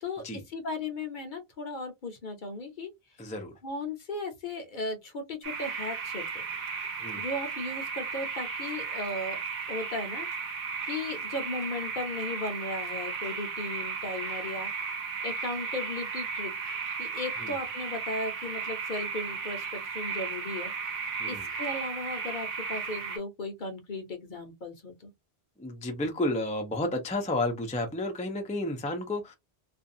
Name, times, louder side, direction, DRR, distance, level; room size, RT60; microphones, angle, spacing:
voice 1, 0.0-2.9 3.6-6.3 7.1-9.4 9.7-10.3 10.9-16.5 17.0-20.7 21.2-25.1, left 2 dB, 55° left, 0.8 m, -36 dB
voice 2, 3.2-3.5 7.0-7.2 17.4-17.5 21.2-21.5 25.6-29.3, left 1 dB, 10° left, 0.4 m, -31 dB
sound 1, 5.4-23.2, right 5 dB, 60° right, 0.9 m, -35 dB
2.5 x 2.2 x 2.6 m
omnidirectional pair, 1.1 m